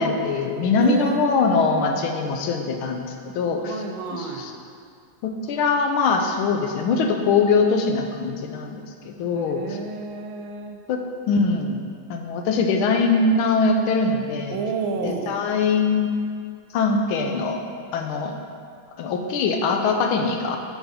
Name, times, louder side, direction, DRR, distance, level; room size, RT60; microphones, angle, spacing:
voice 1, 0.0-3.8 4.1-4.5 5.2-9.6 10.9-11.0 11.3-11.8 12.1-14.6 15.0-16.1 16.7-17.6 17.9-18.4 19.0-20.6, left 4 dB, 85° left, 3 dB, 1.5 m, -22 dB
voice 2, 0.8-2.0 3.6-4.5 9.3-10.8 14.5-15.4, right 4 dB, 80° right, 4 dB, 1.4 m, -30 dB
6.3 x 4.9 x 5.1 m, 2.3 s
omnidirectional pair, 2.3 m